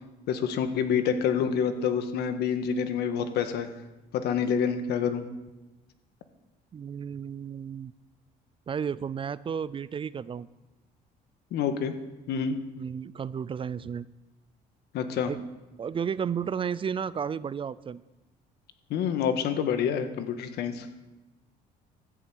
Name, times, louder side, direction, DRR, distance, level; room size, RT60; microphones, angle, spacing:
voice 1, 0.3-3.7 4.1-5.3 11.5-12.0 12.3-12.6 14.9-15.3 18.9-20.9, left 7 dB, 75° left, 8 dB, 1.6 m, -27 dB
voice 2, 6.7-7.9 8.7-10.5 12.8-14.1 15.3-15.4 15.8-18.0, right 7 dB, 30° right, 19 dB, 0.4 m, -32 dB
14.0 x 7.6 x 8.6 m, 1.1 s
cardioid pair, 110°, 17 cm